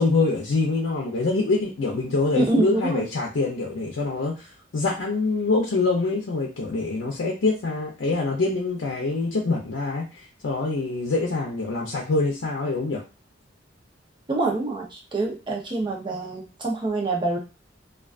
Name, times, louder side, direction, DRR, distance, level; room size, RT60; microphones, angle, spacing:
voice 1, 0.0-4.5 4.7-13.0, left 3 dB, 85° left, -1 dB, 0.6 m, -25 dB
voice 2, 2.4-3.1 14.3-17.4, right 2 dB, 25° right, -1 dB, 0.6 m, -25 dB
2.4 x 2.2 x 2.4 m, 0.31 s
head